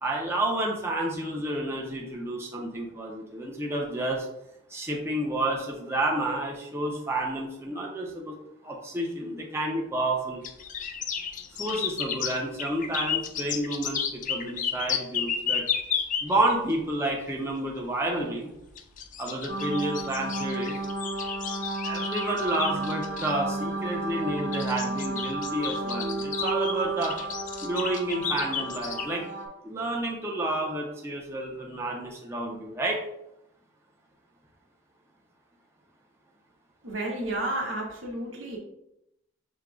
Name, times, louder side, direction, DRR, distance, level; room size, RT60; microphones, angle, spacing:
voice 1, 0.0-4.3 4.7-8.3 8.6-10.4 11.6-15.6 16.2-18.5 19.2-20.8 21.8-27.1 27.6-29.2 29.6-33.0, right 1 dB, 15° right, -2 dB, 0.6 m, -30 dB
sound 1, 10.4-16.5 18.8-23.3 24.2-29.1, left 7 dB, 40° left, 0.4 m, -32 dB
sound 2, 19.5-29.5, right 2 dB, 60° right, 0.8 m, -32 dB
voice 2, 36.8-38.6, right 1 dB, 85° right, -1 dB, 1.1 m, -31 dB
6.2 x 2.8 x 2.4 m, 0.83 s
head